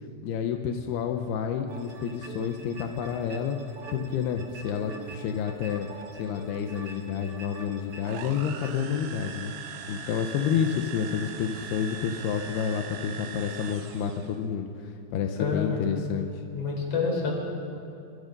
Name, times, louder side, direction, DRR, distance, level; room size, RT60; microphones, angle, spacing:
voice 1, 0.2-3.6 3.9-5.9 6.2-9.5 9.9-16.3, left 7 dB, 80° left, 4 dB, 2.3 m, -29 dB
sound 1, 1.7-8.9, right 4 dB, 65° right, 1.4 m, -44 dB
sound 2, 8.0-14.4, right 7 dB, 90° right, 1.9 m, -41 dB
voice 2, 15.4-15.8 16.5-17.3, left 5 dB, 30° left, 0 dB, 4.8 m, -28 dB
29.5 x 22.0 x 5.4 m, 2.6 s
omnidirectional pair, 5.9 m